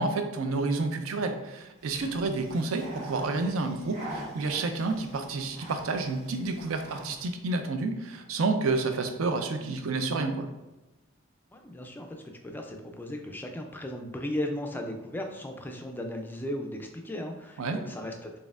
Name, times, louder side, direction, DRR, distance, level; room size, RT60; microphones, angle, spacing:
voice 1, 0.0-10.5 17.6-17.8, right 3 dB, 80° right, 7 dB, 0.4 m, -29 dB
sound 1, 1.8-7.4, right 1 dB, 35° right, 1.2 m, -44 dB
voice 2, 11.5-18.4, left 1 dB, 10° left, 3 dB, 0.3 m, -36 dB
4.1 x 3.4 x 2.4 m, 1.1 s
head